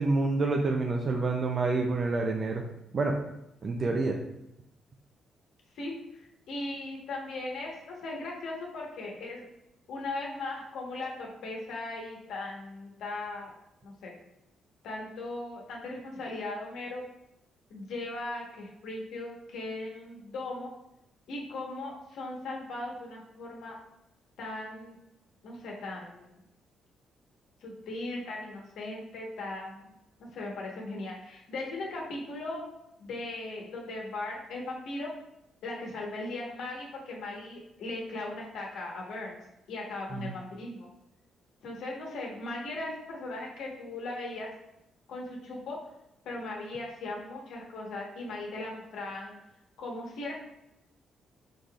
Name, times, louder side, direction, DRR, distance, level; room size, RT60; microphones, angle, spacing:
voice 1, 0.0-2.6 2.9-3.2 3.6-4.2 40.2-40.3, right 3 dB, 40° right, 1 dB, 0.5 m, -27 dB
voice 2, 5.7-9.5 9.9-13.5 13.8-14.1 14.8-17.0 17.7-20.7 21.3-23.8 24.4-24.9 25.4-26.4 27.6-29.9 30.2-32.6 33.0-35.1 35.6-39.4 39.7-40.9 41.6-44.5 45.1-45.8 46.2-49.3 49.8-50.3, left 2 dB, 80° left, -1 dB, 1.2 m, -38 dB
4.9 x 4.0 x 2.4 m, 0.86 s
cardioid pair, 90°, 0 cm